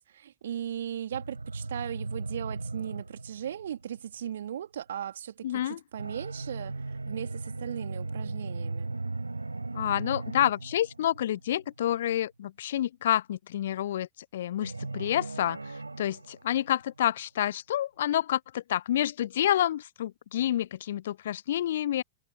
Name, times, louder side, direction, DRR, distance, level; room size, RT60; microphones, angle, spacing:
voice 1, 0.0-8.9, right 10 dB, 65° right, 3.1 m, -38 dB
sound 1, 1.1-4.2 5.9-11.6 14.6-17.0, right 3 dB, 80° right, 4.5 m, -37 dB
voice 2, 5.4-5.8 9.7-15.6 16.0-22.0, left 12 dB, 60° left, 0.3 m, -28 dB
figure-of-eight pair, 90°, 0 cm